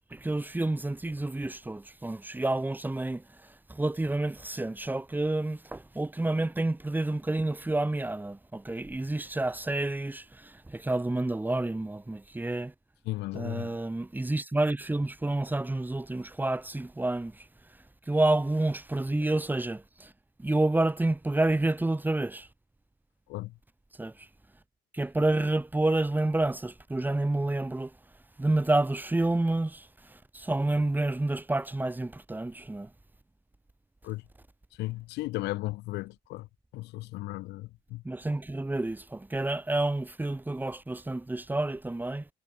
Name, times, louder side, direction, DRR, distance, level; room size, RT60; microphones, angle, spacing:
voice 1, 0.0-12.7 13.3-17.5 18.1-20.1 20.4-22.5 24.0-24.3 24.9-27.9 28.4-32.9 38.0-42.3, right 2 dB, 10° right, 4.0 m, -29 dB
voice 2, 13.1-13.8 23.3-23.5 34.0-34.2 34.8-36.5 36.7-38.0, left 19 dB, 85° left, 3.7 m, -35 dB
cardioid pair, 110°, 17 cm